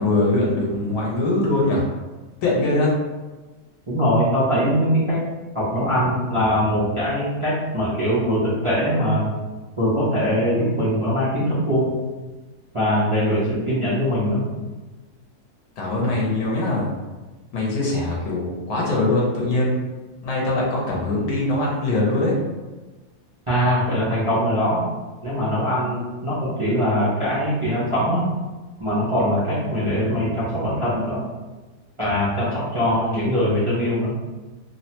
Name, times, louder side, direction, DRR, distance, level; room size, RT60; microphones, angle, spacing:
voice 1, 0.0-1.9 2.4-3.0 15.8-16.9 17.5-19.8 20.2-22.4, left 2 dB, 80° left, -3 dB, 1.2 m, -22 dB
voice 2, 3.9-5.2 5.5-9.3 9.8-11.9 12.7-14.4 23.5-24.8 25.2-28.3 28.8-31.2 32.0-34.1, equal, 40° right, -11 dB, 0.4 m, -22 dB
3.1 x 2.1 x 2.8 m, 1.2 s
omnidirectional pair, 1.7 m